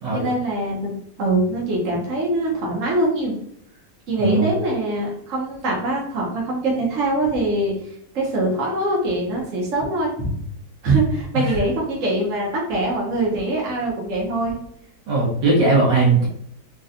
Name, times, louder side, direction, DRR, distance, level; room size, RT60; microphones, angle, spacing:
voice 1, 0.1-3.4 4.1-7.7 8.1-10.4 10.8-14.6, right 2 dB, 55° right, -3 dB, 1.1 m, -23 dB
voice 2, 4.2-4.5 11.3-11.6 15.1-16.3, right 3 dB, 85° right, -7 dB, 1.7 m, -19 dB
4.0 x 2.2 x 2.5 m, 0.68 s
omnidirectional pair, 1.9 m